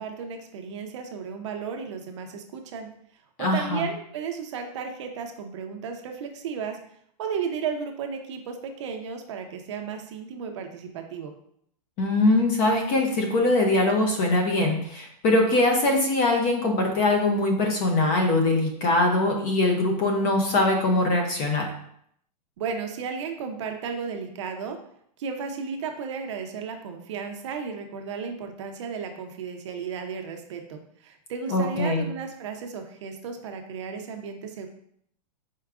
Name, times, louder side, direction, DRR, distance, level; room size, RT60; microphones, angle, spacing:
voice 1, 0.0-2.9 3.4-6.8 7.2-11.3 22.6-24.8 25.2-34.7, right 6 dB, 45° right, 4 dB, 0.6 m, -34 dB
voice 2, 3.4-3.8 12.0-21.7 31.5-32.1, left 2 dB, 25° left, 2 dB, 0.6 m, -22 dB
4.6 x 4.5 x 2.4 m, 0.69 s
supercardioid pair, 170°, 21 cm